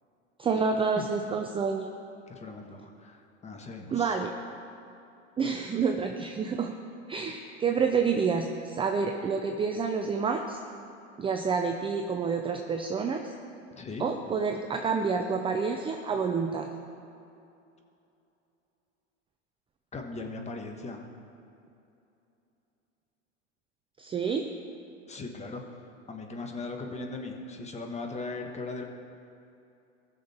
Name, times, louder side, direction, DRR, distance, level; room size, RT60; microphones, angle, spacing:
voice 1, 0.4-1.9 3.9-4.3 5.4-6.7 7.1-10.6 11.2-13.3 14.0-16.7 24.0-24.5, right 5 dB, 15° right, 4 dB, 0.5 m, -28 dB
voice 2, 2.3-4.2 13.8-14.1 19.9-21.0 25.1-25.8 26.1-28.8, left 3 dB, 15° left, 3 dB, 1.4 m, -38 dB
18.5 x 6.5 x 4.4 m, 2.7 s
hypercardioid pair, 110°, 38 cm